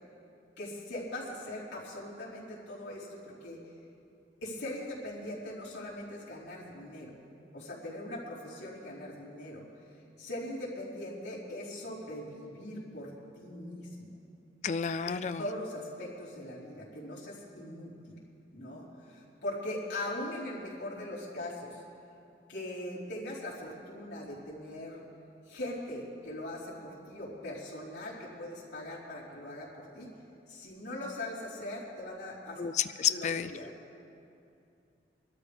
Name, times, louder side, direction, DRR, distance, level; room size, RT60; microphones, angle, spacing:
voice 1, 0.6-3.6 4.4-7.1 7.5-9.6 10.2-13.1 13.4-14.2 15.1-18.1 18.5-21.8 22.5-25.0 25.5-30.1 30.5-32.6 33.1-33.7, left 1 dB, 75° left, -7 dB, 4.2 m, -40 dB
voice 2, 14.6-15.4 32.6-33.5, left 8 dB, 40° left, 11 dB, 0.3 m, -30 dB
23.5 x 13.0 x 3.5 m, 2.6 s
head